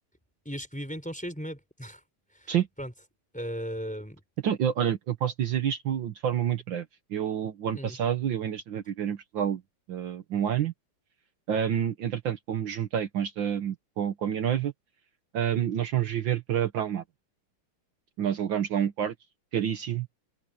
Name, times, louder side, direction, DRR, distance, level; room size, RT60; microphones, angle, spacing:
voice 1, 0.4-2.0 2.3-2.5 2.8-2.9 3.3-4.2 7.7-8.0, equal, 5° left, 4.5 m, -36 dB
voice 2, 4.4-6.8 7.1-9.6 9.9-10.7 11.5-14.7 15.3-17.0 18.2-19.1 19.5-20.1, right 9 dB, 65° right, 1.8 m, -28 dB
omnidirectional pair, 2.3 m